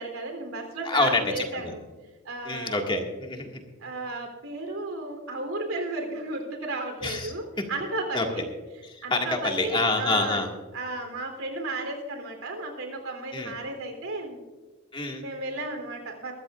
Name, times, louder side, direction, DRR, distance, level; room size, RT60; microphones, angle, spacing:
voice 1, 0.0-1.8 2.2-2.8 3.8-8.4 9.0-10.4 10.7-14.4 15.2-16.3, right 2 dB, 90° right, 4 dB, 3.3 m, -34 dB
voice 2, 0.9-1.7 2.5-3.6 7.0-7.3 8.1-8.3 8.9-10.5 13.3-13.5 14.9-15.2, left 2 dB, 25° left, 2 dB, 1.9 m, -27 dB
23.0 x 13.5 x 2.5 m, 1.3 s
head